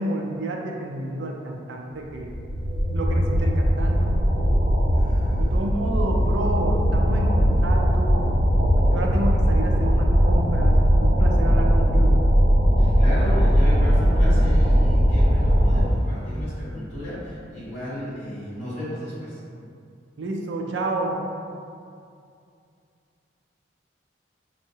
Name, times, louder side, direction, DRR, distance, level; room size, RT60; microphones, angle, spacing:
voice 1, 0.0-2.3 2.9-4.1 5.4-8.3 8.9-12.2 20.2-21.2, right 2 dB, 75° right, 1 dB, 0.4 m, -30 dB
sound 1, 2.1-15.8, equal, 35° right, 0.6 m, -19 dB
voice 2, 4.9-5.6 12.8-19.4, equal, 35° left, -12 dB, 1.4 m, -34 dB
4.5 x 2.0 x 2.7 m, 2.4 s
head